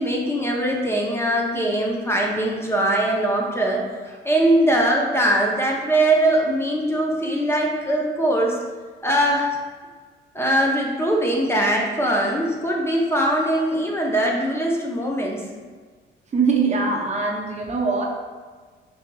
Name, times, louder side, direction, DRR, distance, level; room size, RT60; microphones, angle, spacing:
voice 1, 0.0-8.6 9.0-9.5 10.3-15.4, right 1 dB, 10° left, -2 dB, 0.6 m, -21 dB
voice 2, 16.3-18.0, right 4 dB, 35° right, -1 dB, 0.7 m, -22 dB
5.7 x 2.7 x 2.2 m, 1.5 s
cardioid pair, 90°, 20 cm